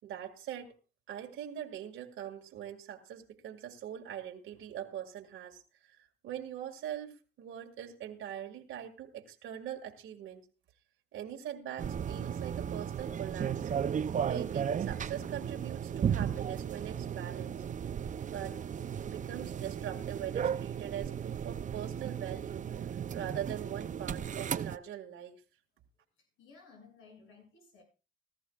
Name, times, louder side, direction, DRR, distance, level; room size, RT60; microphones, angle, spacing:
voice 1, 0.0-0.7 1.1-10.4 11.1-13.7 14.2-17.6 18.3-18.6 19.0-25.4, right 10 dB, 85° right, 2 dB, 2.0 m, -42 dB
sound 1, 11.8-24.8, right 8 dB, 40° right, 0.5 m, -35 dB
voice 2, 26.2-27.8, left 4 dB, 85° left, 0 dB, 7.0 m, -57 dB
19.0 x 13.5 x 2.4 m, 0.34 s
cardioid pair, 90°, 20 cm